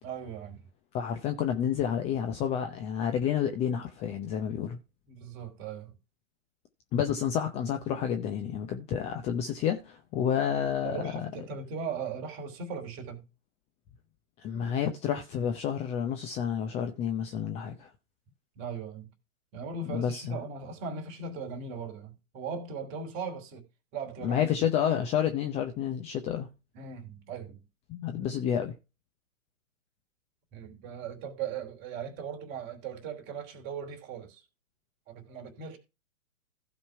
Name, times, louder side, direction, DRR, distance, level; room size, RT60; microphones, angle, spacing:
voice 1, 0.0-0.7 5.1-6.0 10.8-13.3 18.5-19.1 19.5-23.7 23.9-24.5 26.7-27.7 30.5-34.4 35.1-35.8, right 5 dB, 30° right, 3.1 m, -38 dB
voice 2, 0.9-4.8 6.9-11.3 14.4-17.9 19.8-20.4 24.2-26.5 27.9-28.8, left 8 dB, 15° left, 0.7 m, -30 dB
15.0 x 5.2 x 4.5 m
hypercardioid pair, 135°, 39 cm